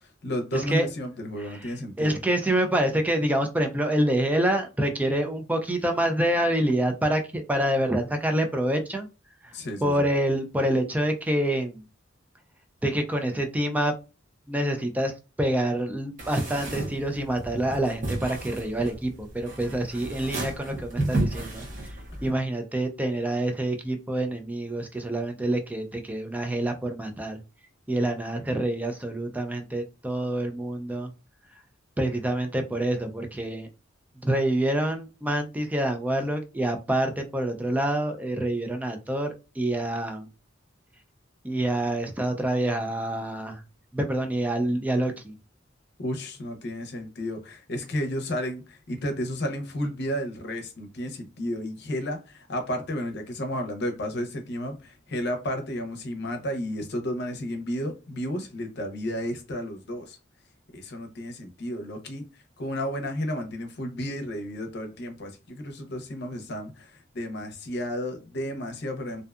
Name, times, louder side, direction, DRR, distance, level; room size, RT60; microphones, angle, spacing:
voice 1, 0.0-2.2 9.5-10.1 46.0-60.2 60.7-62.2 62.6-69.2, equal, 60° left, 0.7 m, -32 dB
voice 2, 0.5-0.9 1.4-1.7 2.0-9.1 9.8-11.8 12.8-13.9 14.5-22.0 22.2-27.4 27.9-31.1 32.0-33.7 34.2-40.3 41.4-43.6 43.9-45.3, right 1 dB, 10° right, 0.3 m, -27 dB
sound 1, 16.2-22.3, right 2 dB, 40° right, 0.8 m, -33 dB
2.6 x 2.3 x 2.2 m
head